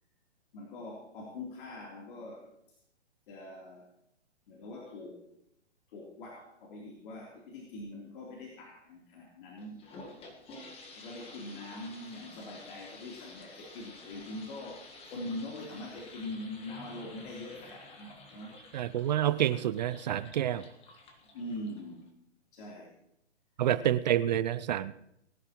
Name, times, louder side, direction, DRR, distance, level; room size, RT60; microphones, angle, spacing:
voice 1, 0.5-2.5 3.3-3.9 4.5-5.2 5.9-9.8 10.9-18.5 21.3-22.1 22.5-22.9, left 1 dB, 45° left, -3 dB, 3.5 m, -43 dB
sound 1, 9.6-22.1, left 2 dB, 15° left, 1.6 m, -51 dB
voice 2, 18.7-20.7 23.6-24.9, right 11 dB, 40° right, 15 dB, 0.5 m, -28 dB
21.0 x 11.0 x 3.1 m, 0.77 s
hypercardioid pair, 135°, 35 cm